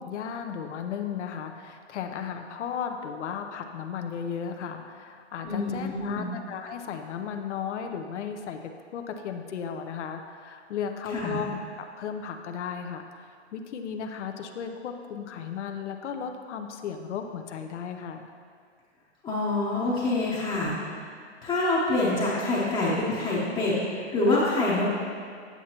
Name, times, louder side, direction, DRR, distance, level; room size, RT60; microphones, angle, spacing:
voice 1, 0.0-18.3, left 7 dB, 80° left, 5 dB, 0.7 m, -35 dB
voice 2, 5.4-6.3 11.1-11.5 19.2-21.0 21.4-24.8, left 2 dB, 15° left, -7 dB, 0.8 m, -26 dB
8.3 x 8.1 x 2.9 m, 2.1 s
hypercardioid pair, 145°, 35 cm